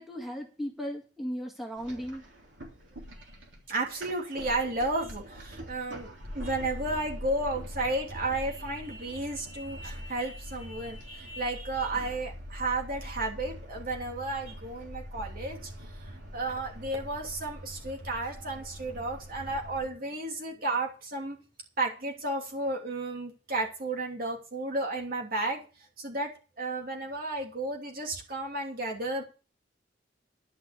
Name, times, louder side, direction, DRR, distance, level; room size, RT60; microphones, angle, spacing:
voice 1, 0.0-2.2, equal, ahead, 0 dB, 1.8 m, -36 dB
sound 1, 1.8-19.9, equal, 85° right, 3.3 m, -44 dB
voice 2, 3.7-21.4 21.8-25.7 26.0-26.3 26.6-29.2, right 2 dB, 50° right, 0 dB, 2.9 m, -33 dB
11.5 x 5.9 x 8.3 m, 0.35 s
head